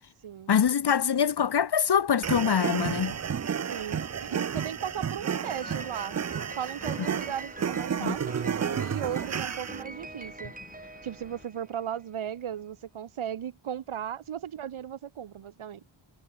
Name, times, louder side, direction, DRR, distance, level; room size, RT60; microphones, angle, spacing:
voice 1, 0.5-3.1 8.0-8.2, left 7 dB, 55° left, 1.2 m, -24 dB
sound 1, 2.2-11.5, left 3 dB, 25° left, 4.2 m, -53 dB
sound 2, 2.2-9.8, right 7 dB, 35° right, 0.5 m, -31 dB
voice 2, 3.6-6.2 6.5-10.5 11.0-15.8, right 9 dB, 85° right, 1.3 m, -36 dB
Piano, 5.4-12.0, right 2 dB, 15° right, 3.8 m, -44 dB
wide cardioid pair, 110°, 48 cm